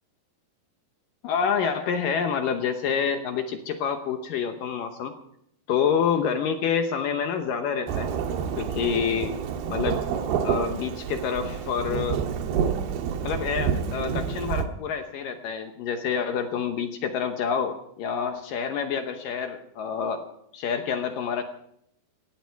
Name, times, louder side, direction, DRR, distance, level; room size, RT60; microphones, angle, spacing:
voice 1, 1.2-5.1 5.7-8.1 8.6-9.4 9.7-10.0 10.4-12.2 13.2-20.2 20.5-21.4, left 7 dB, 70° left, 6 dB, 2.1 m, -27 dB
Thunderstorm / Rain, 7.9-14.7, right 7 dB, 70° right, 3.0 m, -28 dB
18.0 x 16.0 x 4.6 m, 0.75 s
omnidirectional pair, 5.0 m